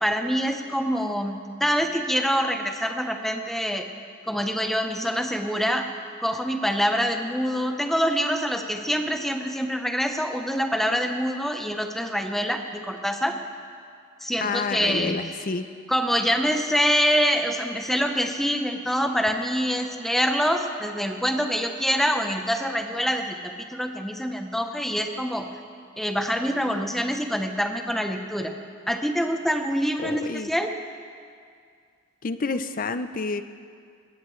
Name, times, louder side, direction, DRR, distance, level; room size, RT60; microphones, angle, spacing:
voice 1, 0.0-3.9 4.3-5.9 6.2-13.4 14.2-15.2 15.9-25.5 26.0-28.5 28.9-30.7, equal, ahead, 5 dB, 0.8 m, -25 dB
voice 2, 14.4-15.7 30.0-30.5 32.2-33.4, left 4 dB, 45° left, 11 dB, 0.6 m, -29 dB
20.0 x 15.5 x 3.2 m, 2.2 s
head